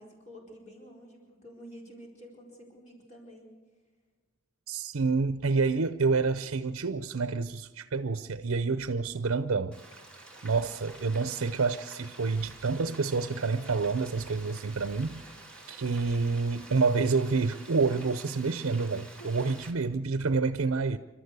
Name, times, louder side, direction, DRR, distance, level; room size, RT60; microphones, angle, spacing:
voice 1, 0.0-3.5 18.9-19.5 20.4-20.6, equal, 35° left, 4.5 m, -50 dB
voice 2, 4.7-9.8 10.4-15.2 15.7-21.0, right 4 dB, 75° right, 0.6 m, -28 dB
Frying (food), 9.7-19.7, right 2 dB, 5° left, 2.6 m, -49 dB
28.5 x 12.5 x 8.1 m
head